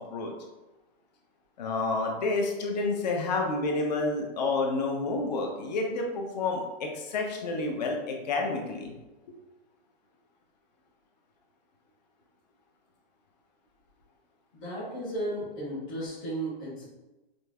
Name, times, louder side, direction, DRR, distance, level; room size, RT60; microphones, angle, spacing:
voice 1, 1.6-8.9, left 3 dB, 45° left, 1 dB, 0.6 m, -29 dB
voice 2, 14.5-16.8, right 1 dB, 10° left, -11 dB, 0.3 m, -34 dB
5.1 x 2.0 x 2.3 m, 1.1 s
hypercardioid pair, 160°, 29 cm